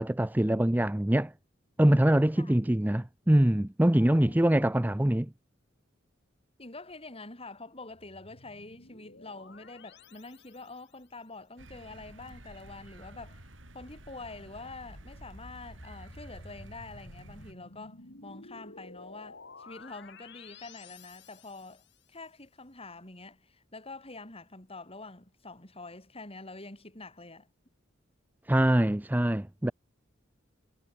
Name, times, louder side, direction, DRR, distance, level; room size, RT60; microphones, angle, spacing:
voice 1, 0.0-1.3 1.8-5.3 28.5-29.7, right 1 dB, 10° right, 0.6 m, -24 dB
voice 2, 4.0-4.7 6.6-13.5 13.7-21.8 22.1-27.5, left 3 dB, 30° left, 5.3 m, -46 dB
sound 1, 7.9-11.0 14.4-22.0, left 3 dB, 65° left, 3.9 m, -52 dB
sound 2, 11.6-17.5, right 1 dB, 70° right, 6.4 m, -51 dB
head